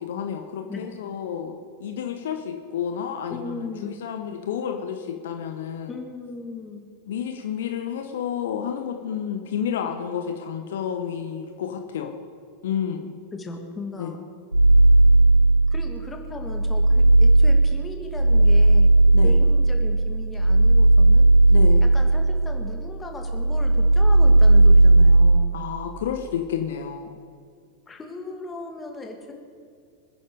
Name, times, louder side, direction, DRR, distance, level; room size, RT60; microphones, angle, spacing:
voice 1, 0.0-5.9 7.1-12.2 12.6-13.2 14.0-14.1 19.1-19.4 21.5-21.8 25.5-27.1, left 8 dB, 60° left, 5 dB, 1.2 m, -30 dB
voice 2, 3.3-4.0 5.9-6.8 13.3-14.2 15.7-18.9 19.2-21.3 21.8-25.6 27.9-29.3, left 3 dB, 15° left, 3 dB, 2.3 m, -37 dB
sound 1, 14.5-16.0 16.4-22.9 23.2-25.5, right 2 dB, 85° right, 0.5 m, -16 dB
26.0 x 9.9 x 5.2 m, 2.1 s
figure-of-eight pair, 90°, 0 cm